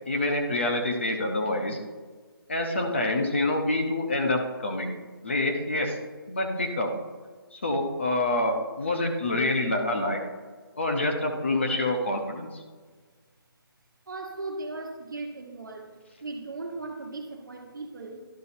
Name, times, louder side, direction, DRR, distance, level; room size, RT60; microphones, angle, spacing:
voice 1, 0.1-1.8 2.5-4.9 5.2-6.0 6.3-6.9 7.5-10.2 10.8-12.6, left 2 dB, 30° left, 2 dB, 0.8 m, -27 dB
voice 2, 14.1-15.9 16.2-18.2, right 3 dB, 55° right, 3 dB, 1.4 m, -37 dB
11.5 x 4.0 x 4.2 m, 1.4 s
hypercardioid pair, 180°, 13 cm